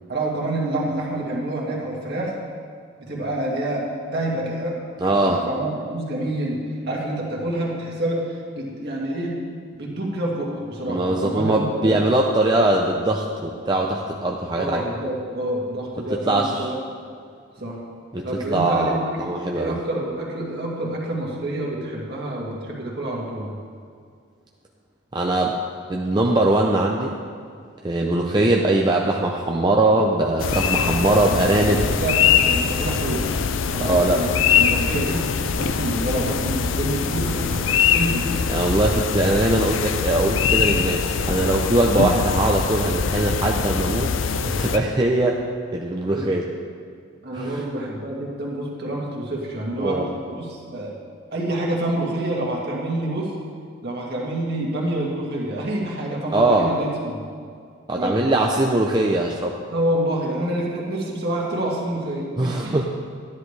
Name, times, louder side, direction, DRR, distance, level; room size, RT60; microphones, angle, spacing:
voice 1, 0.1-2.3 3.0-4.8 5.2-6.6 6.9-9.4 9.8-12.0 14.5-16.8 17.6-17.8 18.2-19.3 19.5-23.5 31.1-32.1 32.4-33.3 33.7-35.2 35.6-38.3 46.1-46.3 47.2-50.0 50.3-50.9 51.3-53.3 53.8-57.1 57.9-58.2 59.7-62.8, right 1 dB, 55° right, -3 dB, 2.0 m, -27 dB
voice 2, 5.0-5.4 10.9-14.8 16.1-16.7 18.1-19.7 25.1-25.6 25.9-27.2 27.8-31.8 33.8-34.2 38.5-44.1 44.6-45.4 45.7-46.5 47.3-47.6 49.8-50.1 56.3-56.7 57.9-59.6 62.4-62.8, right 2 dB, 20° right, 0 dB, 0.5 m, -21 dB
sound 1, 30.4-44.8, left 6 dB, 75° left, 0.5 m, -22 dB
12.5 x 10.5 x 3.3 m, 2.2 s
head